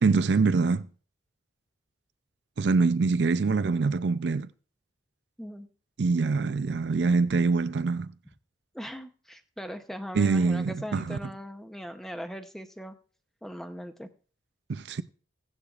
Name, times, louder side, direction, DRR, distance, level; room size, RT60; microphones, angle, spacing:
voice 1, 0.0-0.8 2.6-4.5 6.0-8.1 10.1-11.2 14.7-15.0, right 4 dB, 75° right, 0.5 m, -24 dB
voice 2, 8.7-12.9 13.4-14.1, equal, ahead, 0.7 m, -39 dB
17.0 x 9.8 x 2.4 m
head